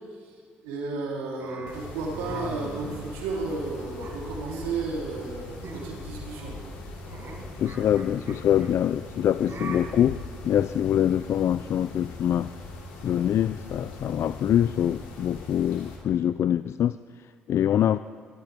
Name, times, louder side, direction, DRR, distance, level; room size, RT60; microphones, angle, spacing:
voice 1, 0.6-6.6, right 3 dB, 85° right, -3 dB, 3.6 m, -33 dB
sound 1, 1.4-3.5 4.0-4.8 5.1-5.3 5.6-6.0 6.3-8.7 9.5-9.8, right 4 dB, 55° right, 5.0 m, -41 dB
Mechanisms, 1.7-16.0, left 2 dB, 85° left, 3.0 m, -41 dB
voice 2, 7.6-12.5 13.0-18.0, left 10 dB, 60° left, 14 dB, 0.4 m, -24 dB
22.5 x 17.5 x 3.6 m, 2.1 s
hypercardioid pair, 50°, 5 cm